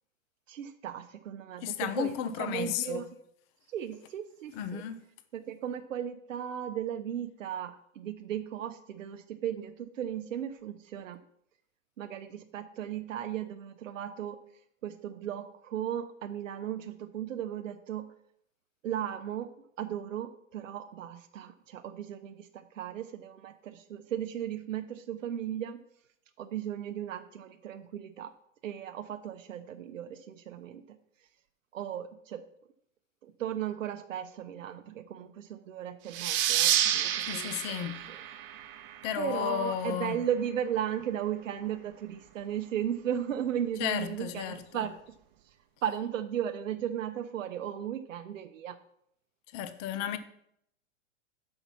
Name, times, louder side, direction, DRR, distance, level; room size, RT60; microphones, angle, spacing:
voice 1, 0.5-2.1 2.4-3.0 3.7-4.8 5.3-11.2 12.0-14.4 14.8-18.1 18.8-25.8 26.4-28.3 28.6-31.0 31.7-32.4 33.2-38.2 39.2-45.0 45.8-48.8, right 10 dB, 85° right, 0.7 m, -36 dB
voice 2, 1.6-3.1 4.5-5.0 37.3-38.0 39.0-40.2 43.8-44.9 49.5-50.2, left 10 dB, 25° left, 0.4 m, -33 dB
sound 1, 36.1-39.4, right 11 dB, 45° right, 0.9 m, -29 dB
5.8 x 5.5 x 6.9 m
hypercardioid pair, 135°, 38 cm